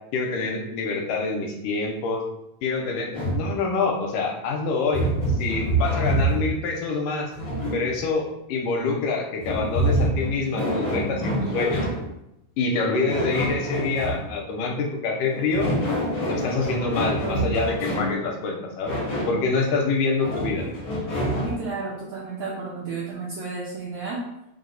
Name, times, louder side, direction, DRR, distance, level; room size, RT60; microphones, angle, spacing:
voice 1, 0.1-2.2 2.6-5.1 5.4-7.3 7.7-11.9 12.6-15.7 16.3-19.0 19.3-20.7, left 4 dB, 85° left, 0 dB, 2.1 m, -26 dB
sound 1, 3.1-3.5 4.9-6.6 7.3-8.1 9.4-12.1 13.1-14.2 15.3-18.2 18.8-19.4 20.2-21.6, right 1 dB, 70° left, 1.2 m, -26 dB
voice 2, 21.4-24.2, right 4 dB, 85° right, -3 dB, 1.5 m, -32 dB
5.3 x 2.1 x 3.9 m, 0.85 s
omnidirectional pair, 3.7 m